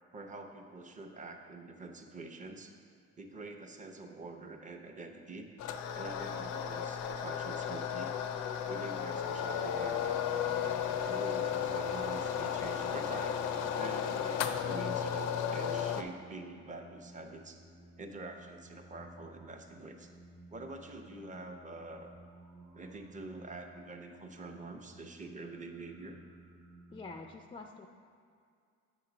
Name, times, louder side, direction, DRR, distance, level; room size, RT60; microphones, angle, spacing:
voice 1, 0.1-2.7 3.2-5.5 5.9-8.1 8.7-10.2 11.0-13.4 13.8-17.6 18.0-20.1 20.5-22.1 22.7-26.2, right 2 dB, 25° right, 4 dB, 0.7 m, -46 dB
sound 1, 5.6-16.0, left 8 dB, 80° left, 0.5 m, -34 dB
sound 2, 9.0-27.1, right 2 dB, 85° right, 0.9 m, -56 dB
voice 2, 26.9-27.9, left 3 dB, 15° left, 4 dB, 0.3 m, -46 dB
8.0 x 3.0 x 5.8 m, 2.3 s
cardioid pair, 90°, 30 cm